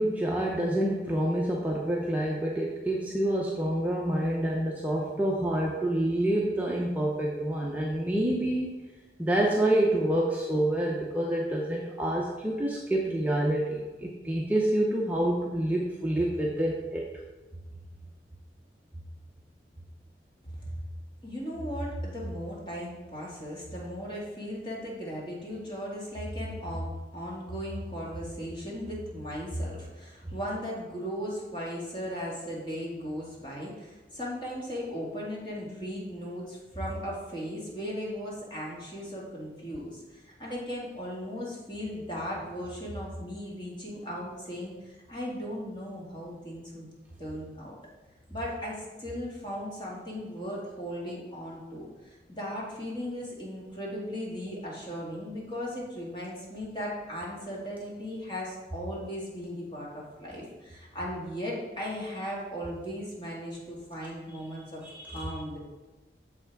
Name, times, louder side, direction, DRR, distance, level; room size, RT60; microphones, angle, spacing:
voice 1, 0.0-8.7 9.2-17.1 64.8-65.2, right 1 dB, 10° right, -3 dB, 0.6 m, -27 dB
voice 2, 21.2-46.9 47.2-47.8 48.3-65.6, equal, 25° left, -4 dB, 1.9 m, -37 dB
7.0 x 5.7 x 4.6 m, 1.2 s
head